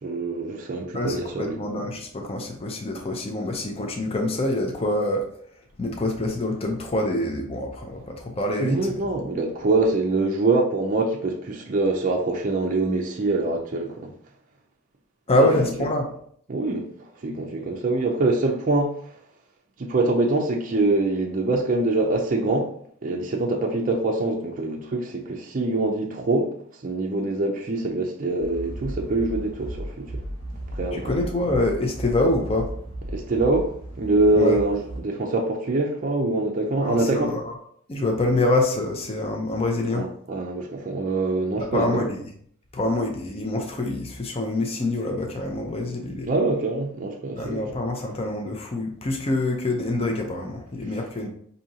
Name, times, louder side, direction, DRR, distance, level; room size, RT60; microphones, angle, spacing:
voice 1, 0.0-1.6 8.6-14.1 15.4-15.5 16.5-19.2 19.8-22.7 23.0-30.2 30.7-31.1 33.1-37.4 39.9-42.0 46.3-47.7, right 2 dB, 40° right, 0.4 m, -24 dB
voice 2, 0.9-5.3 5.8-9.0 15.3-16.0 30.9-32.7 34.3-34.6 36.8-37.5 37.9-40.1 41.6-42.2 42.7-46.3 47.4-51.3, left 2 dB, 30° left, 0.5 m, -25 dB
sound 1, 28.4-35.0, right 1 dB, 90° left, 1.3 m, -35 dB
4.9 x 2.7 x 2.8 m
head